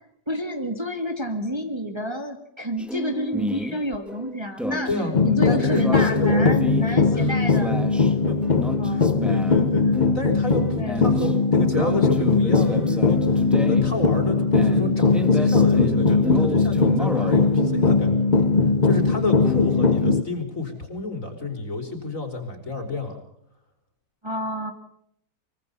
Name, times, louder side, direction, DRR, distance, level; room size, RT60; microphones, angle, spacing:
voice 1, 0.3-4.9 5.2-7.9 8.8-9.3 10.8-11.1 24.2-24.7, equal, 15° right, 4 dB, 2.2 m, -29 dB
sound 1, 2.8-20.2, equal, ahead, 1.7 m, -31 dB
sound 2, 5.1-20.2, left 4 dB, 35° left, 0.9 m, -20 dB
voice 2, 5.5-6.4 7.1-7.4 8.3-8.4 8.9-18.3 18.8-23.2, left 3 dB, 50° left, 4 dB, 5.0 m, -30 dB
24.0 x 24.0 x 5.5 m, 0.72 s
omnidirectional pair, 1.8 m